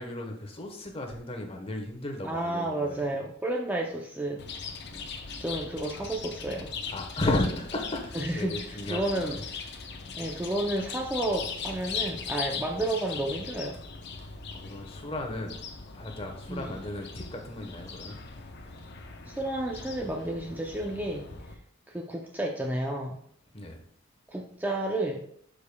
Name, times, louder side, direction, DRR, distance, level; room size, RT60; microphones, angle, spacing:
voice 1, 0.0-3.0 4.9-5.0 6.9-9.4 10.0-10.2 14.2-15.6 15.9-18.2 23.5-23.8, left 1 dB, 30° left, 3 dB, 1.1 m, -34 dB
voice 2, 2.2-4.4 5.4-6.7 8.1-8.6 8.9-9.4 10.2-13.8 16.5-16.7 19.3-21.3 21.9-23.2 24.3-25.2, right 1 dB, 10° right, 0 dB, 0.5 m, -31 dB
Chirp tweet, 4.4-21.5, left 5 dB, 55° left, 0.8 m, -39 dB
12.0 x 5.1 x 2.3 m, 0.65 s
head